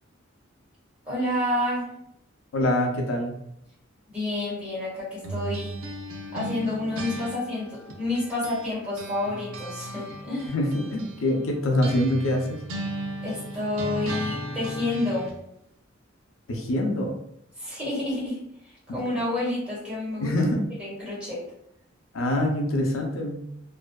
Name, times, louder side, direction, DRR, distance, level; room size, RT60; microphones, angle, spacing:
voice 1, 1.0-1.9 4.1-5.7 6.3-10.5 13.2-15.3 17.6-18.4 18.9-20.3 20.8-21.4, left 1 dB, 5° right, -10 dB, 1.3 m, -29 dB
voice 2, 2.5-3.4 10.5-12.6 16.5-17.2 18.9-19.0 20.2-20.6 22.1-23.4, left 1 dB, 90° left, 2 dB, 0.5 m, -25 dB
sound 1, 5.2-8.7 9.0-15.4, right 1 dB, 85° right, 0.4 m, -36 dB
2.5 x 2.2 x 2.2 m, 0.75 s
head